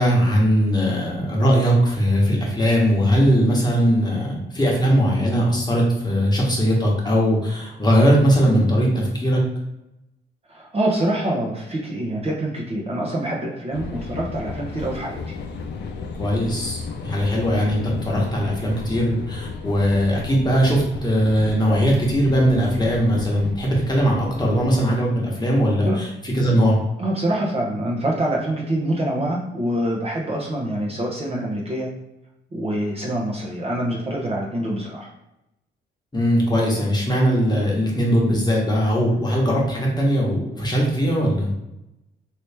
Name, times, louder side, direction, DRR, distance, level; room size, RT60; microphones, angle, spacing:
voice 1, 0.0-9.4 16.2-26.8 36.1-41.5, equal, 20° left, -3 dB, 1.1 m, -20 dB
voice 2, 10.5-15.2 25.8-26.0 27.0-31.9 32.5-35.1, right 1 dB, 30° right, -2 dB, 0.8 m, -25 dB
sound 1, 13.7-24.8, left 4 dB, 60° left, 0.5 m, -34 dB
3.0 x 2.8 x 3.3 m, 0.89 s
cardioid pair, 90°, 20 cm